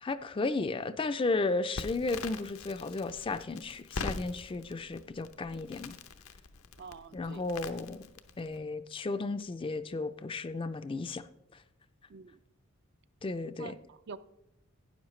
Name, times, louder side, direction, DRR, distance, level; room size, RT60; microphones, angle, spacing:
voice 1, 0.0-5.9 7.1-8.1 8.4-11.2 13.2-13.8, left 3 dB, 25° left, 0.4 m, -34 dB
Crackle, 1.8-8.6, left 4 dB, 80° left, 0.7 m, -43 dB
voice 2, 6.8-7.4 12.1-12.3 13.6-14.2, right 5 dB, 55° right, 0.4 m, -46 dB
12.5 x 9.4 x 3.1 m
head